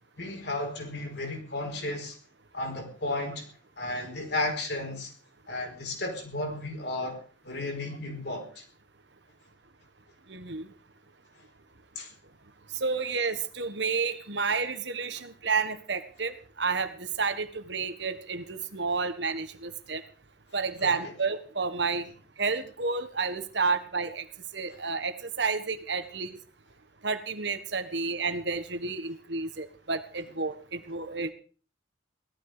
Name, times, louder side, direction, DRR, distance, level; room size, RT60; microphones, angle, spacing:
voice 1, 0.2-2.2 2.5-5.1 5.5-7.2 7.4-8.6 11.9-12.1 20.8-21.1 24.7-24.8, left 2 dB, 60° left, 3 dB, 4.9 m, -34 dB
voice 2, 10.3-10.7 12.7-20.0 20.5-22.1 22.4-24.2 24.5-26.4 27.0-31.3, right 4 dB, 65° right, 10 dB, 1.6 m, -30 dB
17.5 x 13.0 x 5.1 m, 0.40 s
head